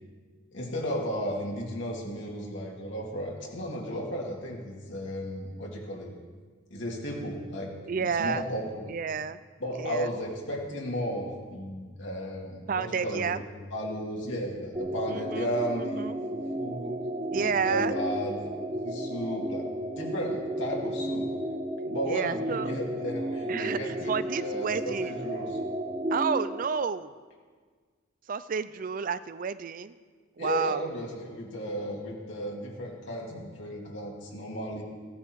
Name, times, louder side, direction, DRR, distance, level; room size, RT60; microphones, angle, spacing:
voice 1, 0.5-6.1 6.7-9.0 9.6-13.3 13.7-16.9 17.3-18.6 18.8-19.6 20.0-21.3 21.8-25.6 30.4-34.8, equal, 75° left, -2 dB, 2.8 m, -34 dB
voice 2, 7.9-8.4 8.9-9.4 9.8-10.1 12.7-13.4 15.1-15.5 15.8-16.2 17.3-17.9 22.1-22.8 23.5-25.2 26.1-27.1 28.3-29.9 30.4-30.8, right 6 dB, 45° right, 15 dB, 0.4 m, -30 dB
sound 1, 14.7-26.6, right 1 dB, 25° right, 0.7 m, -33 dB
16.5 x 10.0 x 4.7 m, 1.5 s
head